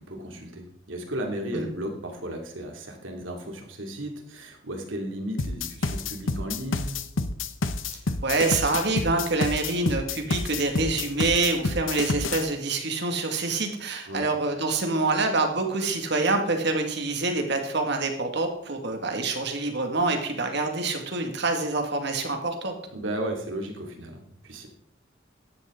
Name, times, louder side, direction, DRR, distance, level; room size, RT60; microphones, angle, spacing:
voice 1, 0.0-7.0 14.1-14.2 22.9-24.7, right 1 dB, 75° right, 2 dB, 2.7 m, -35 dB
sound 1, 5.4-12.4, left 3 dB, 80° left, 0.9 m, -28 dB
voice 2, 8.2-22.7, right 3 dB, 60° right, 4 dB, 2.1 m, -26 dB
14.0 x 10.5 x 3.8 m, 0.72 s
head